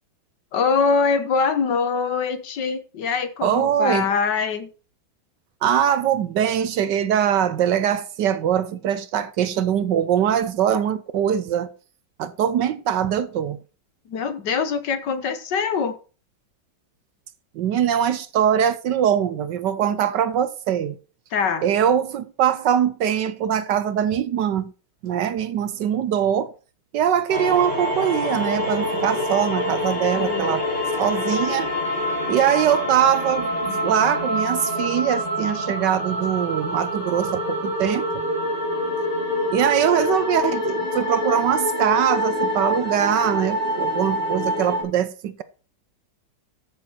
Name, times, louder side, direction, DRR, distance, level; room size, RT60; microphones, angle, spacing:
voice 1, 0.5-4.7 14.1-16.0 21.3-21.6 30.1-30.6, left 5 dB, 65° left, 1.7 m, -23 dB
voice 2, 3.4-4.1 5.6-11.7 12.2-13.6 17.6-21.0 21.6-24.7 25.0-26.5 26.9-30.7 31.0-31.7 32.3-38.1 39.5-45.4, right 9 dB, 70° right, 1.3 m, -22 dB
sound 1, 27.3-44.8, left 1 dB, 20° left, 4.6 m, -26 dB
14.0 x 6.8 x 4.4 m
omnidirectional pair, 2.1 m